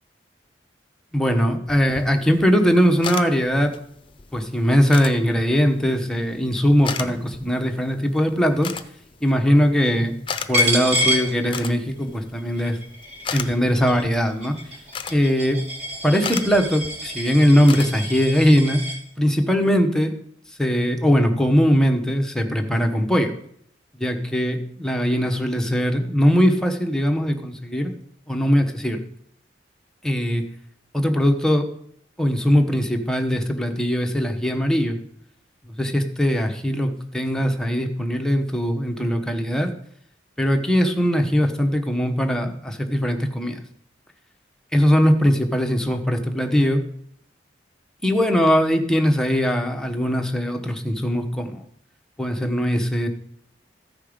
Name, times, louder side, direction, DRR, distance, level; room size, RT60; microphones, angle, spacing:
voice 1, 1.1-3.7 4.3-8.7 9.2-12.8 13.3-14.6 15.1-15.6 16.0-18.8 19.2-20.1 20.6-23.3 24.0-27.9 28.3-29.0 30.0-30.4 30.9-31.7 32.2-35.0 35.7-39.7 40.4-43.6 44.7-46.8 48.0-51.6 52.2-53.1, equal, 5° left, 3 dB, 1.0 m, -20 dB
sound 1, 1.7-18.6, left 6 dB, 30° left, 0.7 m, -37 dB
Coin (dropping), 10.5-12.0 12.4-19.0, equal, 40° right, 2.5 m, -28 dB
14.0 x 5.6 x 5.0 m, 0.68 s
head